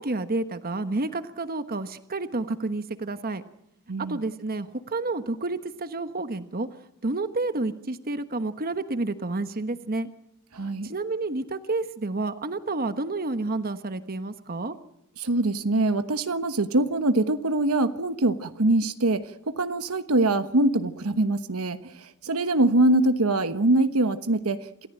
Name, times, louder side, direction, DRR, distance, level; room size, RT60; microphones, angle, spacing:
voice 1, 0.0-3.4 4.1-6.7 7.0-10.1 10.8-14.7, right 2 dB, 45° right, 10 dB, 1.2 m, -30 dB
voice 2, 3.9-4.2 10.5-10.9 15.2-21.8 22.2-24.9, right 2 dB, 75° right, 9 dB, 1.2 m, -23 dB
27.5 x 14.5 x 9.0 m, 0.81 s
head